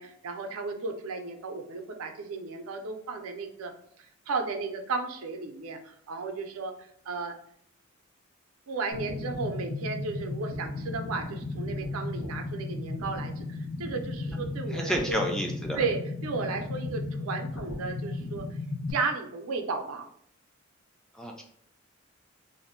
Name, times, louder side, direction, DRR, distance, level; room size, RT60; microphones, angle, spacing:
voice 1, 0.0-3.7 4.3-6.7 7.1-7.3 8.7-15.2 15.7-18.4 18.9-20.1, right 4 dB, 85° right, 4 dB, 0.5 m, -34 dB
sound 1, 8.9-18.9, left 2 dB, 80° left, 0.5 m, -35 dB
voice 2, 14.7-15.8 21.2-21.4, equal, 5° left, 1 dB, 0.3 m, -30 dB
2.5 x 2.0 x 3.6 m, 0.66 s
head